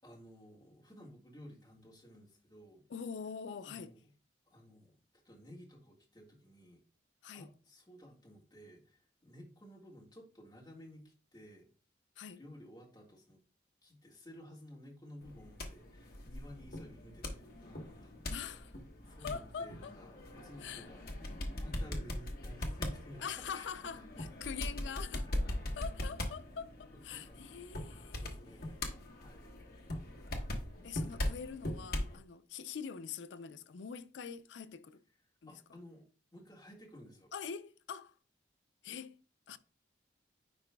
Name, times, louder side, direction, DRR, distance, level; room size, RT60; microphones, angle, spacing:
voice 1, 0.0-2.8 3.6-4.1 4.5-4.9 5.2-6.8 7.3-11.7 12.4-13.4 13.8-18.1 19.0-21.1 21.5-23.7 23.9-24.2 27.1-27.4 28.2-29.6 30.8-31.3 35.5-36.0 36.3-37.3, equal, 20° left, 1.7 m, -54 dB
voice 2, 2.9-3.9 7.2-7.5 12.2-12.4 18.3-18.8 19.2-19.9 20.6-20.9 23.2-25.3 25.8-28.3 30.8-35.0 35.4-35.5 37.3-38.2 38.8-39.2 39.5-39.6, left 6 dB, 75° left, 0.4 m, -44 dB
sound 1, 15.2-32.2, left 1 dB, 55° left, 1.0 m, -41 dB
9.7 x 4.5 x 2.2 m
head